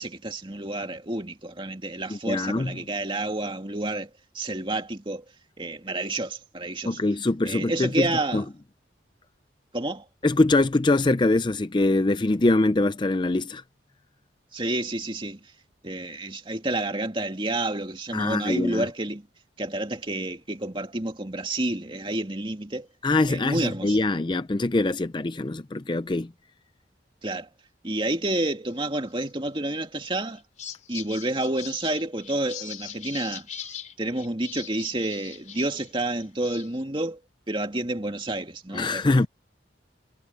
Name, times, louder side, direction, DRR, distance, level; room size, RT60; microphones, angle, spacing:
voice 1, 0.0-4.1 4.3-5.2 5.6-7.0 7.4-8.4 9.7-10.0 14.5-15.4 15.8-19.3 19.6-22.9 23.3-24.0 27.2-27.5 27.8-30.4 30.9-33.5 34.0-37.2 37.5-39.0, right 2 dB, 25° right, 2.4 m, -29 dB
voice 2, 2.1-2.8 6.9-8.4 10.2-13.6 18.1-18.9 23.0-26.3 38.7-39.3, left 2 dB, 25° left, 0.5 m, -23 dB
sound 1, 29.7-30.0 30.3-35.9 36.2-36.8, left 9 dB, 40° left, 4.3 m, -41 dB
head